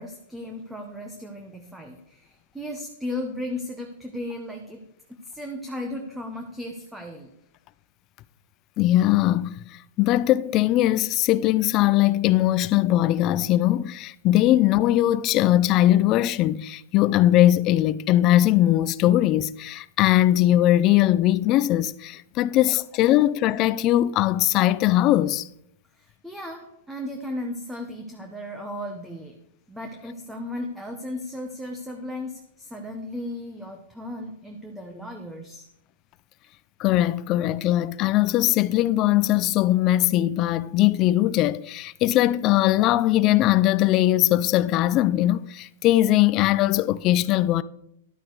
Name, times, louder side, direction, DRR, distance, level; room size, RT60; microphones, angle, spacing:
voice 1, 0.0-7.3 25.9-29.4 29.7-35.7, left 1 dB, 5° right, 1.2 m, -35 dB
voice 2, 8.8-9.5 10.0-25.5 36.8-47.6, left 14 dB, 35° left, 0.5 m, -20 dB
12.0 x 8.7 x 4.7 m
hypercardioid pair, 145°, 0 cm